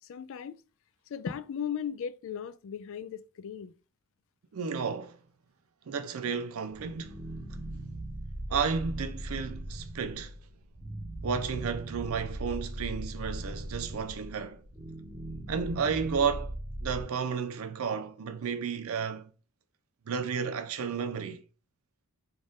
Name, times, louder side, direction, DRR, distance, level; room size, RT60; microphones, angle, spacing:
voice 1, 0.1-0.6 1.1-3.7, left 7 dB, 60° left, 0.3 m, -37 dB
voice 2, 4.5-5.2 5.9-7.2 8.5-10.3 11.2-14.6 15.5-16.6 16.8-19.3 20.1-21.4, right 6 dB, 70° right, 0.5 m, -32 dB
sound 1, 6.7-17.0, right 1 dB, 20° right, 1.4 m, -39 dB
3.9 x 2.5 x 3.5 m
head